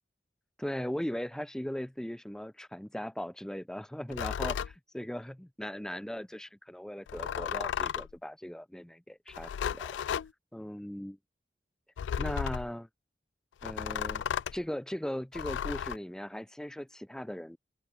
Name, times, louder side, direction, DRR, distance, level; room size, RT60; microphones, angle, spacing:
voice 1, 0.6-10.0 10.5-11.2 12.2-12.9 13.6-14.2 14.5-17.6, equal, 5° left, 0.3 m, -38 dB
sound 1, 4.1-4.7 7.1-8.1 9.3-10.3 12.0-12.7 13.6-14.6 15.3-16.0, left 8 dB, 90° left, 0.3 m, -34 dB
head